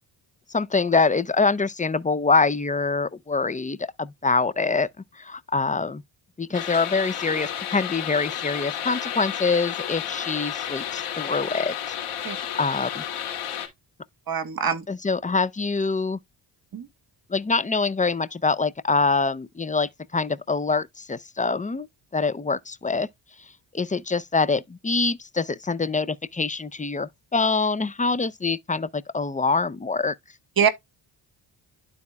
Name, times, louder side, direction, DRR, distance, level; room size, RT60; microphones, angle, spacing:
voice 1, 0.5-4.9 5.2-6.0 6.4-13.0 14.9-16.2 17.3-21.9 22.1-23.1 23.7-30.2, left 4 dB, 15° left, 0.6 m, -25 dB
sound 1, 6.5-13.7, left 9 dB, 80° left, 2.5 m, -32 dB
voice 2, 14.3-14.8 16.7-16.8 30.6-30.7, right 7 dB, 45° right, 1.4 m, -23 dB
12.0 x 4.2 x 2.3 m
cardioid pair, 65°, 50 cm